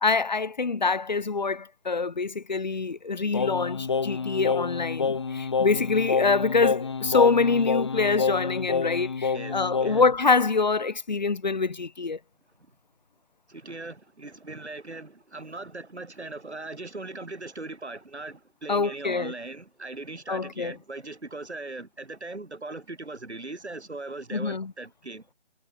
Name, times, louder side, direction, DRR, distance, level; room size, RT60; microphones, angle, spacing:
voice 1, 0.0-12.2 18.7-19.3 20.3-20.7 24.3-24.7, left 4 dB, 40° left, 2.6 m, -25 dB
Singing, 3.3-10.2, left 5 dB, 25° left, 2.1 m, -28 dB
voice 2, 9.3-10.0 13.5-25.3, right 2 dB, 90° right, 6.9 m, -39 dB
figure-of-eight pair, 175°, 33 cm